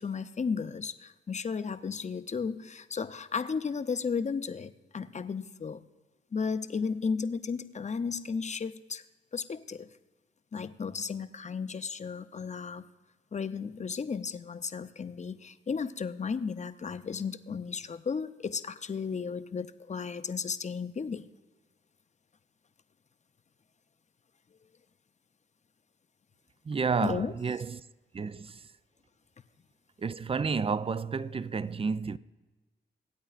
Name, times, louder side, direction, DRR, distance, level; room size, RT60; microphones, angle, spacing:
voice 1, 0.0-5.8 6.3-9.0 9.3-9.9 10.5-12.9 13.3-21.3 27.0-27.3, left 5 dB, 35° left, 0.6 m, -34 dB
voice 2, 26.7-27.8 28.1-28.7 30.0-32.2, right 5 dB, 30° right, 0.4 m, -31 dB
24.5 x 8.8 x 2.4 m
cardioid pair, 55°, 20 cm